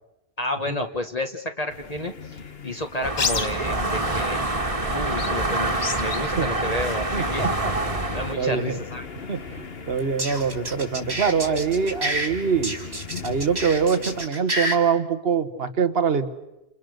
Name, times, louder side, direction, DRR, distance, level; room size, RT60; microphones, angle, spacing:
voice 1, 0.4-4.6 4.8-9.3, left 1 dB, 40° left, 4 dB, 1.6 m, -31 dB
sound 1, 1.7-14.3, left 5 dB, 70° left, 1.6 m, -36 dB
sound 2, 3.0-8.3, right 2 dB, 35° right, 1.9 m, -26 dB
voice 2, 7.1-7.7 8.4-8.8 9.3-12.7 13.2-16.3, right 6 dB, 65° right, 11 dB, 1.6 m, -24 dB
sound 3, 10.0-12.3 12.6-14.8, right 1 dB, 90° right, 4.5 m, -28 dB
29.0 x 28.5 x 6.6 m, 0.94 s
omnidirectional pair, 1.1 m